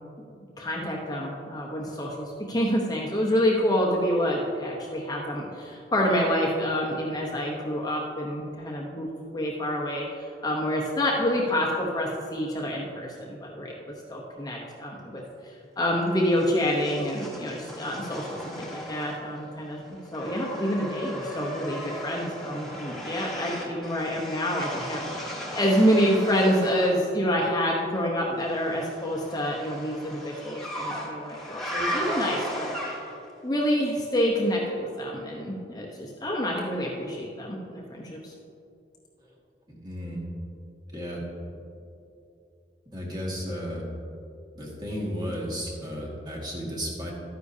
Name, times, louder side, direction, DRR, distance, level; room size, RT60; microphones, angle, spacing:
voice 1, 0.6-10.0 10.4-13.7 14.1-15.2 15.8-19.8 20.1-32.7 33.4-38.3, equal, 20° left, -3 dB, 0.8 m, -27 dB
sound 1, 16.4-19.4 19.7-27.0 28.6-33.3, equal, ahead, 1.4 m, -36 dB
voice 2, 39.8-40.2 40.9-41.2 42.9-43.9 44.6-47.1, equal, 25° right, -3 dB, 1.8 m, -33 dB
12.5 x 9.7 x 2.7 m, 2.6 s
head